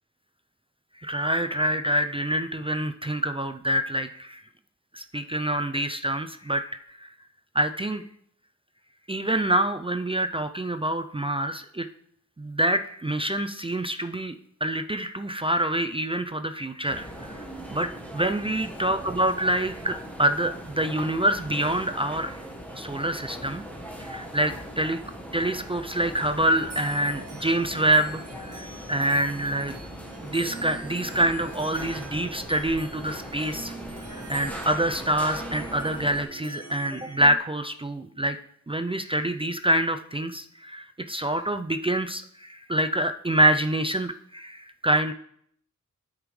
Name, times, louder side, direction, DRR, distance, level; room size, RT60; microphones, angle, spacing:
voice 1, 1.0-4.4 4.9-6.7 7.0-7.1 7.5-8.0 9.1-11.9 12.4-14.3 14.6-17.4 17.7-22.3 22.8-23.6 24.0-25.0 25.3-29.7 30.2-33.7 34.1-38.4 38.7-45.1, right 1 dB, 15° right, 7 dB, 0.4 m, -26 dB
sound 1, 16.9-36.2, equal, 5° left, 1.3 m, -40 dB
sound 2, 26.6-37.4, right 3 dB, 50° right, 1.4 m, -43 dB
12.5 x 5.1 x 3.2 m, 0.69 s
wide cardioid pair, 65°, 32 cm